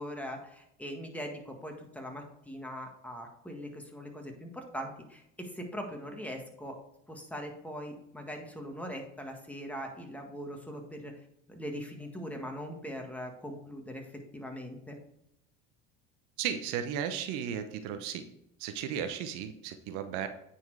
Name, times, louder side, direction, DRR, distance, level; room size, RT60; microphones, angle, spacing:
voice 1, 0.0-6.8 7.1-11.1 11.5-15.0, equal, 5° left, 2 dB, 1.8 m, -41 dB
voice 2, 16.4-18.3 18.6-20.3, right 8 dB, 75° right, 9 dB, 0.9 m, -35 dB
9.3 x 4.4 x 4.8 m, 0.77 s
supercardioid pair, 90°, 30 cm